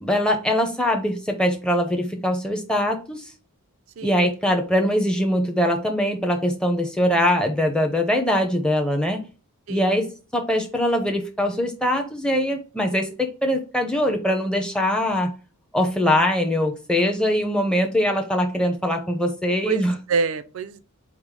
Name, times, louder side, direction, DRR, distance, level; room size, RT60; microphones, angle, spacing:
voice 1, 0.0-3.2 4.0-9.2 9.7-15.3 15.7-20.0, equal, 5° left, 0.6 m, -22 dB
voice 2, 19.7-20.8, right 4 dB, 60° right, 0.4 m, -26 dB
5.0 x 2.0 x 4.7 m
head